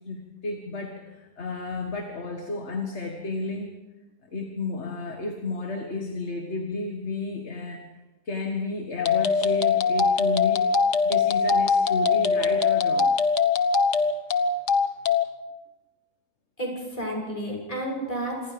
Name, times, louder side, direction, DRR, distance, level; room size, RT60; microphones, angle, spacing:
voice 1, 0.0-3.8 4.2-7.8 8.3-10.7 11.0-13.2, left 3 dB, 40° left, 3 dB, 2.0 m, -32 dB
sound 1, 9.0-15.2, left 5 dB, 65° left, 1.7 m, -22 dB
voice 2, 16.6-18.5, right 1 dB, 20° left, -1 dB, 7.0 m, -31 dB
27.0 x 20.5 x 5.2 m, 1.1 s
omnidirectional pair, 2.0 m